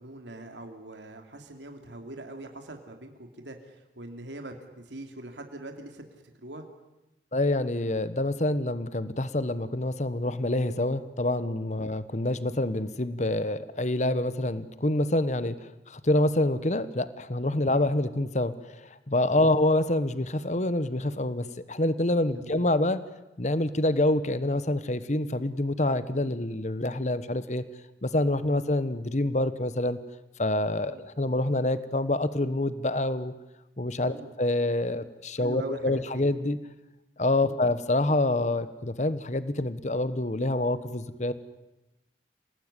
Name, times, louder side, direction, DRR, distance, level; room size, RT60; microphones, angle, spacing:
voice 1, 0.0-6.6 11.7-11.9 17.6-17.8 19.5-19.6 22.3-22.6 28.4-28.6 30.9-31.0 34.0-34.3 35.4-36.0 37.4-37.6, right 2 dB, 90° right, 5 dB, 2.7 m, -43 dB
voice 2, 7.3-23.0 23.4-27.6 28.0-30.0 30.4-33.3 33.8-36.6 37.2-41.3, left 1 dB, 40° left, 14 dB, 1.1 m, -27 dB
27.5 x 18.5 x 9.9 m, 0.97 s
head